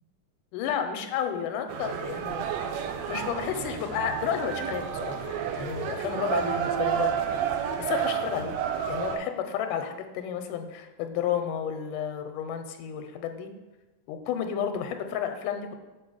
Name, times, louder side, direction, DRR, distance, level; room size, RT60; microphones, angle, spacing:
voice 1, 0.5-2.7 3.1-7.2 7.8-8.5 8.9-13.5 14.1-15.7, left 8 dB, 85° left, 7 dB, 2.3 m, -31 dB
sound 1, 1.7-9.2, right 8 dB, 75° right, 1.6 m, -30 dB
6.0 x 5.0 x 6.3 m, 1.1 s
omnidirectional pair, 3.7 m